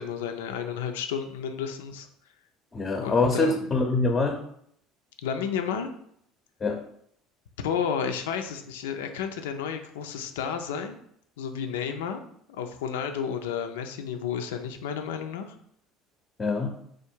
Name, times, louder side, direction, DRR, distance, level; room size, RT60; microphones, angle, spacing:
voice 1, 0.0-2.1 3.0-3.7 5.2-5.9 7.6-11.0 11.4-12.2 12.5-15.5, left 7 dB, 85° left, 6 dB, 0.5 m, -32 dB
voice 2, 2.7-4.4 6.6-6.8 16.4-16.8, left 3 dB, 30° left, 3 dB, 0.7 m, -24 dB
3.5 x 2.5 x 4.5 m, 0.69 s
hypercardioid pair, 75°, 0 cm